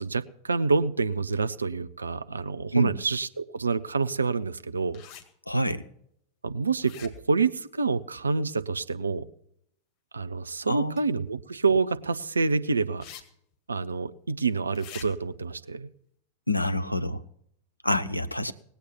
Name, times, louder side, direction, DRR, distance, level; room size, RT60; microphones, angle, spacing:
voice 1, 0.0-5.0 6.4-9.3 10.1-13.1 13.7-15.9, right 4 dB, 75° right, 11 dB, 0.6 m, -27 dB
sound 1, 4.9-5.2 6.8-7.4 11.0-11.1 13.0-13.2 13.5-13.6 14.7-15.1, left 9 dB, 40° left, 1.9 m, -44 dB
voice 2, 5.5-5.8 10.7-11.0 16.5-17.2 17.8-18.5, equal, 85° left, 11 dB, 0.7 m, -26 dB
19.0 x 8.4 x 6.0 m, 0.71 s
figure-of-eight pair, 90°, 0 cm